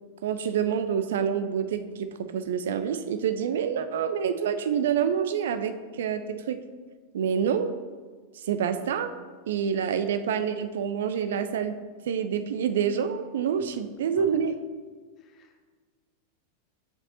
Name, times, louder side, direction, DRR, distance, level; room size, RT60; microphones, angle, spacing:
voice 1, 0.2-6.6 7.1-7.7 8.4-9.1 9.5-11.7 12.1-14.5, right 7 dB, 60° right, 10 dB, 0.4 m, -27 dB
voice 2, 15.2-15.7, left 8 dB, 30° left, 6 dB, 0.8 m, -51 dB
7.8 x 6.0 x 2.8 m, 1.5 s
figure-of-eight pair, 90°, 0 cm